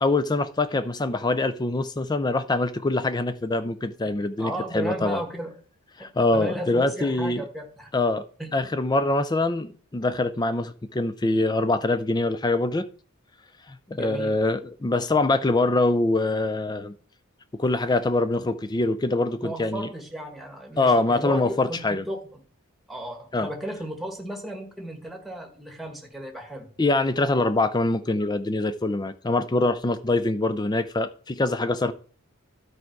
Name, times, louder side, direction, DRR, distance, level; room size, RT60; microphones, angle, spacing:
voice 1, 0.0-5.2 6.0-7.4 7.9-8.2 8.5-12.9 13.7-17.0 17.6-19.9 20.8-22.0 23.3-23.5 26.8-31.9, left 2 dB, 20° left, 0.4 m, -24 dB
voice 2, 4.4-5.5 6.0-7.9 8.4-8.5 13.9-14.4 19.4-22.4 22.9-26.7, right 1 dB, ahead, 1.5 m, -35 dB
12.5 x 4.7 x 4.6 m
head